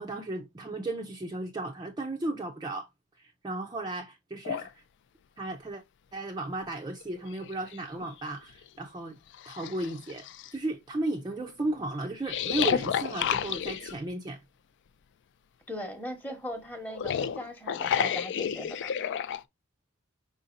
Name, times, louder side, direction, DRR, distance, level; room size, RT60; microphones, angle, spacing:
voice 1, 0.0-2.9 3.2-4.8 5.4-5.8 6.1-9.2 9.5-10.3 10.5-14.4, right 2 dB, 20° right, 0.5 m, -34 dB
sound 1, 4.5-4.7 6.5-6.6 7.0-8.1 8.6-8.7 9.3-10.5 12.3-14.0 16.8-19.4, left 8 dB, 55° left, 0.3 m, -31 dB
voice 2, 15.7-18.9, left 1 dB, 10° left, 1.0 m, -39 dB
5.0 x 4.0 x 2.5 m
head